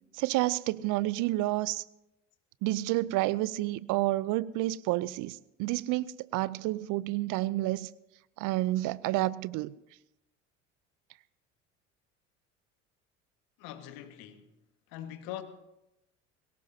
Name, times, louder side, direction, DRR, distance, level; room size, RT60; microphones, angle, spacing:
voice 1, 0.1-1.8 2.6-6.1 6.3-7.9 8.4-9.7, right 17 dB, 60° right, 0.6 m, -29 dB
voice 2, 13.6-14.5 14.9-15.4, left 12 dB, 65° left, 1.7 m, -42 dB
22.5 x 17.5 x 2.8 m
hypercardioid pair, 60°, 36 cm